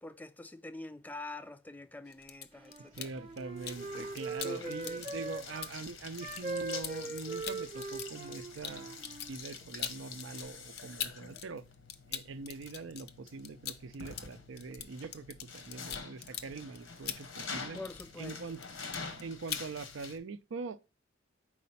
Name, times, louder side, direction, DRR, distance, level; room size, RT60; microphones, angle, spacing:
voice 1, 0.0-3.1 4.4-5.0 17.8-18.4, left 2 dB, 10° left, 0.4 m, -45 dB
sound 1, 2.1-3.8 4.2-11.4 11.7-18.3 18.5-19.2 19.5-19.7, left 9 dB, 55° left, 0.6 m, -43 dB
Wind instrument woodwind instrument, 2.6-5.7 6.2-9.3, right 3 dB, 30° right, 0.8 m, -41 dB
sound 2, 2.9-20.2, left 4 dB, 80° left, 1.0 m, -47 dB
voice 2, 2.9-11.6 12.1-17.8 18.2-18.6 19.2-20.8, right 4 dB, 70° right, 0.5 m, -43 dB
4.9 x 4.2 x 5.5 m
head